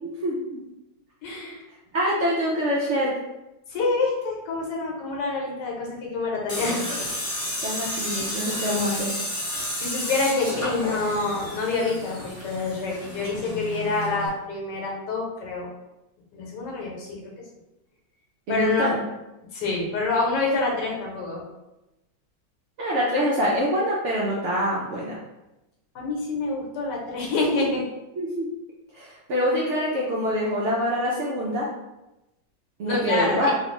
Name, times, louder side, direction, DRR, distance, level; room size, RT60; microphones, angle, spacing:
voice 1, 0.0-0.6 1.9-3.1 7.6-9.2 18.5-19.0 22.8-25.2 28.2-28.5 28.9-31.7 32.8-33.5, equal, 85° right, -5 dB, 0.6 m, -25 dB
voice 2, 1.2-1.6 3.7-6.9 9.8-15.7 16.3-17.3 18.5-18.9 19.5-21.4 25.9-27.9 32.9-33.5, left 3 dB, 75° left, -2 dB, 1.3 m, -27 dB
Tools, 6.5-14.3, left 1 dB, 35° left, 0.5 m, -31 dB
3.2 x 2.3 x 3.0 m, 0.97 s
omnidirectional pair, 1.9 m